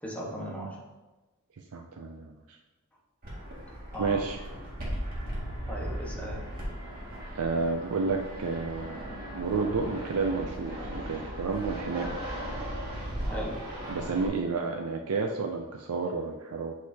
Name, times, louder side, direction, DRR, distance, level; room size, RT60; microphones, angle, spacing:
voice 1, 0.0-0.8 3.9-4.2 5.7-6.4 13.3-13.6, equal, 5° left, -3 dB, 1.2 m, -37 dB
voice 2, 1.7-2.3 4.0-4.4 7.3-12.2 13.9-16.7, right 4 dB, 80° right, 2 dB, 0.5 m, -31 dB
Fixed-wing aircraft airplane, 3.2-14.3, equal, 45° right, 2.0 m, -37 dB
6.5 x 6.4 x 2.8 m, 1.1 s
head